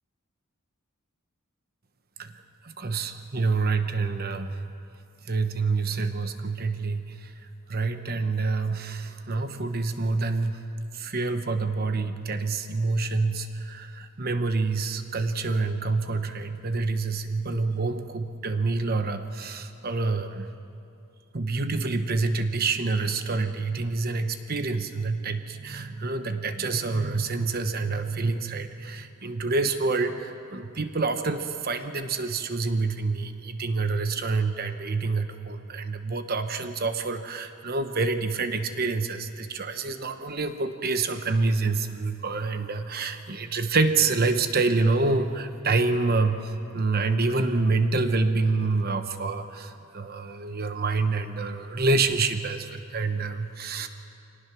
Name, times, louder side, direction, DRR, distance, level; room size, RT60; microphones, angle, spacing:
voice 1, 2.8-4.5 5.3-7.1 7.7-10.6 10.9-20.5 21.3-46.4 46.7-53.9, right 3 dB, 45° right, 8 dB, 1.0 m, -27 dB
25.0 x 19.0 x 6.1 m, 2.6 s
head